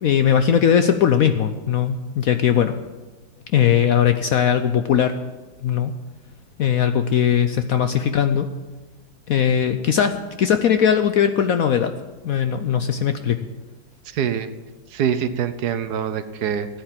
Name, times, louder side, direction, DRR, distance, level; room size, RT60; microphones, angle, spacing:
voice 1, 0.0-2.7 3.5-5.1 5.6-5.9 6.6-8.5 9.3-10.1 10.4-11.9 12.2-13.4, left 8 dB, 65° left, 9 dB, 0.9 m, -19 dB
voice 2, 14.1-14.5 14.9-16.7, right 8 dB, 65° right, 11 dB, 1.2 m, -24 dB
13.0 x 9.0 x 7.3 m, 1.2 s
omnidirectional pair, 2.0 m